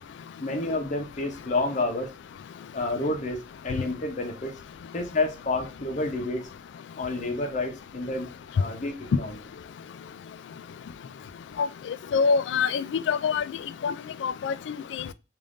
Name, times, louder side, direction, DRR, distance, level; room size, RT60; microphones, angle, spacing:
voice 1, 0.4-2.1 2.7-4.6 4.9-6.5 7.0-8.3 8.5-9.4, left 2 dB, 45° left, 0.7 m, -29 dB
voice 2, 12.1-13.4 13.8-13.9 14.2-14.7, left 5 dB, 75° left, 0.3 m, -24 dB
3.7 x 2.6 x 3.5 m
head